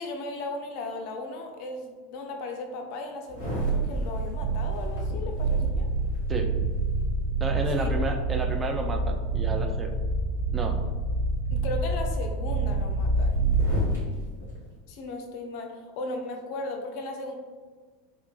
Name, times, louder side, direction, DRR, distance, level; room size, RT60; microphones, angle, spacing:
voice 1, 0.0-5.9 7.7-7.9 11.5-13.5 14.9-17.3, left 2 dB, 55° left, 3 dB, 0.4 m, -36 dB
sound 1, 3.3-14.0 14.4-14.5, right 2 dB, 85° right, 1.3 m, -27 dB
voice 2, 7.4-9.9 10.5-10.8, right 3 dB, 25° right, 4 dB, 0.3 m, -31 dB
3.0 x 2.3 x 2.3 m, 1.5 s
figure-of-eight pair, 85°, 0 cm